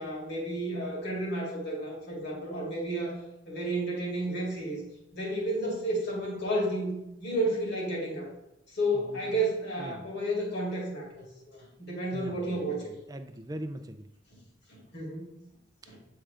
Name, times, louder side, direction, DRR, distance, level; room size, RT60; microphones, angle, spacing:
voice 1, 0.0-3.2 3.5-4.8 5.1-6.9 7.2-8.3 8.7-12.9 14.7-15.3 15.9-16.0, right 1 dB, 55° left, -3 dB, 2.2 m, -32 dB
voice 2, 8.9-9.3 9.8-10.1 12.1-12.8 13.1-14.1, right 1 dB, 20° right, 7 dB, 0.4 m, -41 dB
8.6 x 3.7 x 3.4 m, 0.87 s
head